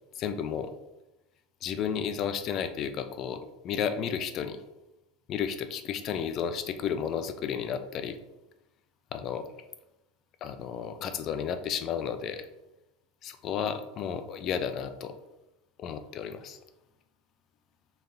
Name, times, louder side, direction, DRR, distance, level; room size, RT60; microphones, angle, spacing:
voice 1, 0.2-0.7 1.6-4.6 5.3-8.2 9.1-9.5 10.4-12.5 13.2-15.1 15.8-16.6, left 7 dB, 45° left, 10 dB, 0.4 m, -32 dB
4.0 x 3.3 x 2.5 m, 0.96 s
supercardioid pair, 105°, 0 cm